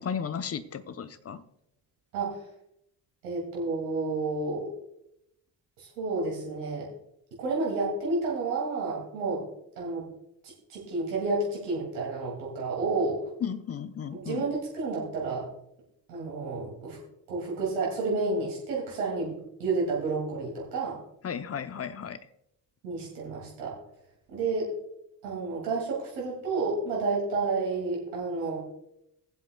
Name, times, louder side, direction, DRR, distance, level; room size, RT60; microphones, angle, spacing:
voice 1, 0.0-1.4 13.4-14.5 21.2-22.2, left 7 dB, 30° left, 13 dB, 0.8 m, -34 dB
voice 2, 3.2-4.7 5.8-6.9 7.4-9.4 9.8-10.1 10.4-13.2 14.1-15.4 16.1-17.0 17.3-21.0 22.8-23.8 24.3-24.7 25.2-28.6, right 3 dB, 85° right, -3 dB, 2.7 m, -30 dB
20.0 x 7.8 x 2.3 m, 0.81 s
hypercardioid pair, 50°, 49 cm